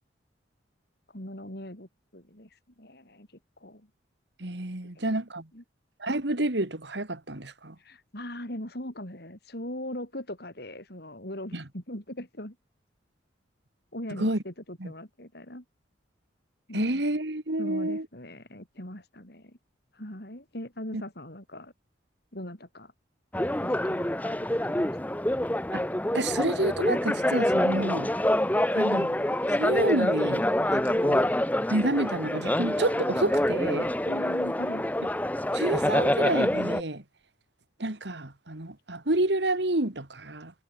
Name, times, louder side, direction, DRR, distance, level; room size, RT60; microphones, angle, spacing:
voice 1, 1.1-3.9 4.9-5.0 5.5-5.6 7.8-12.6 13.9-15.6 16.7-17.0 17.6-19.6 19.9-21.7 22.3-22.9 23.6-25.1 34.1-34.8, left 1 dB, 55° left, 6.1 m, -40 dB
voice 2, 4.4-5.5 6.0-7.8 11.5-11.6 14.2-14.4 14.8-14.9 16.7-18.1 20.9-21.0 25.7-25.8 26.1-28.1 28.7-29.2 29.6-30.4 30.7-31.3 31.7-33.9 35.5-37.0 37.8-40.5, right 1 dB, 65° right, 2.2 m, -29 dB
sound 1, 23.3-36.8, left 1 dB, 10° left, 0.9 m, -26 dB
head